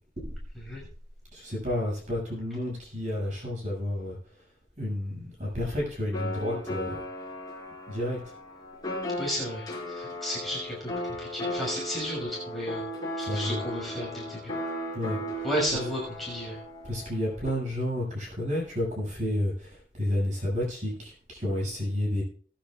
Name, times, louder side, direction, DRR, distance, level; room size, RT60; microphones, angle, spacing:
voice 1, 1.3-4.2 4.8-7.0 7.9-8.2 13.2-13.6 14.9-15.2 15.7-15.8 16.8-22.2, left 1 dB, 45° right, -3 dB, 6.7 m, -31 dB
sound 1, 6.1-17.5, equal, 25° left, 4.5 m, -36 dB
voice 2, 9.2-10.9 11.2-12.8 13.2-14.5 15.4-16.6, equal, ahead, -5 dB, 5.9 m, -33 dB
21.0 x 10.0 x 2.5 m, 0.43 s
head